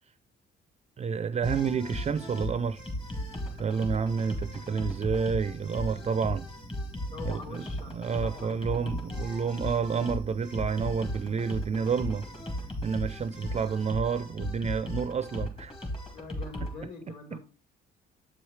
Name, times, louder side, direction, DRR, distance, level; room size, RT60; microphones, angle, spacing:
voice 1, 1.0-2.8 3.6-6.5 7.3-7.6 7.9-12.3 12.8-15.7 17.3-17.4, right 6 dB, 35° right, 0.4 m, -29 dB
sound 1, 1.4-16.8, equal, 25° left, 2.1 m, -36 dB
voice 2, 7.1-7.9 8.2-9.7 16.1-17.4, left 3 dB, 40° left, 3.0 m, -45 dB
7.7 x 4.7 x 3.1 m
cardioid pair, 90°, 20 cm